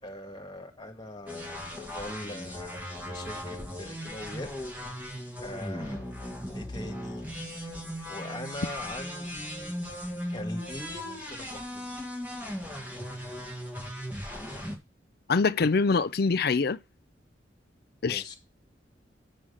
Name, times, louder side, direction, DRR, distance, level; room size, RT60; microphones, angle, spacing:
voice 1, 0.0-4.5 5.4-7.3 8.1-9.7 10.3-11.9 18.0-18.4, left 1 dB, 25° left, 2.1 m, -42 dB
sound 1, 1.3-14.8, equal, 10° right, 2.0 m, -38 dB
voice 2, 15.3-16.8 18.0-18.3, left 4 dB, 55° left, 0.5 m, -24 dB
7.7 x 6.4 x 5.6 m
head